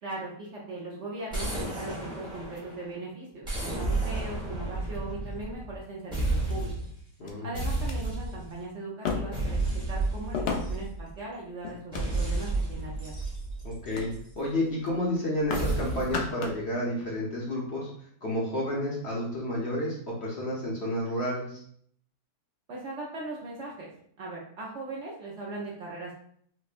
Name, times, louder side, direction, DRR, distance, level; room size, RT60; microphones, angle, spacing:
voice 1, 0.0-6.7 7.4-9.6 9.9-13.1 22.7-23.9 24.2-26.1, right 2 dB, 60° right, -4 dB, 0.8 m, -39 dB
sound 1, 1.3-2.9 3.4-5.8 6.1-7.0 7.5-8.6 9.3-11.2 11.9-14.3 15.5-16.3, right 2 dB, 5° right, 0.7 m, -32 dB
sound 2, 2.3-3.3 4.2-4.3 4.9-5.5 6.5-6.6 7.3-7.4 7.7-8.0 9.0-9.6 10.3-10.9 11.6-12.5 13.0-13.3 13.9-14.1 14.4-14.6 14.8-15.7 16.0-16.7 17.0-17.1, left 5 dB, 85° left, 0.5 m, -35 dB
voice 2, 7.2-7.6 13.6-17.9 18.2-21.6, left 1 dB, 50° left, -5 dB, 0.9 m, -31 dB
4.4 x 2.1 x 2.4 m, 0.63 s
omnidirectional pair, 1.6 m